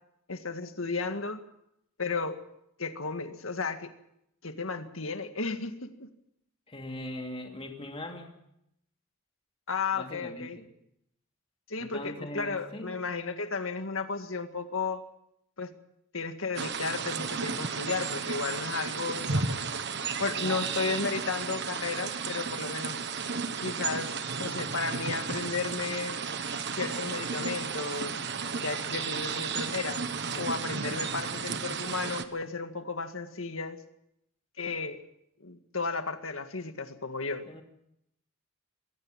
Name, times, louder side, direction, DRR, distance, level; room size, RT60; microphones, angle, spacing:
voice 1, 0.3-1.4 2.0-2.4 2.8-3.9 4.4-6.1 9.7-10.6 11.7-15.0 15.6-15.7 16.1-19.7 20.2-23.0 23.6-26.2 26.7-28.2 28.6-30.0 30.4-33.8 34.6-35.0 35.4-37.4, left 4 dB, 80° left, 8 dB, 1.9 m, -34 dB
voice 2, 6.7-8.3 9.9-10.7 11.8-13.0 20.4-21.0 31.1-31.5 37.5-37.6, left 1 dB, 25° left, 3 dB, 2.7 m, -41 dB
sound 1, 16.6-32.2, right 5 dB, 55° right, 1.4 m, -33 dB
22.5 x 17.0 x 7.4 m, 0.77 s
head